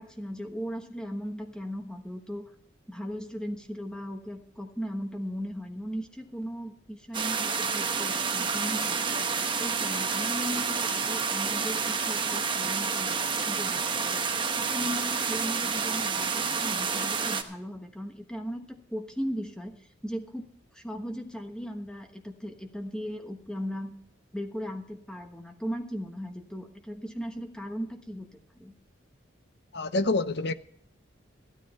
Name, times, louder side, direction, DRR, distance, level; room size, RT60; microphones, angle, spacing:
voice 1, 0.0-2.5 2.9-9.3 9.6-14.2 14.6-19.7 20.0-20.4 20.7-23.9 24.3-28.3 28.5-28.7, equal, 5° left, 1.2 m, -37 dB
sound 1, 7.1-17.4, right 5 dB, 25° right, 1.0 m, -29 dB
voice 2, 29.7-30.5, left 2 dB, 55° left, 0.7 m, -27 dB
14.5 x 13.0 x 4.3 m
head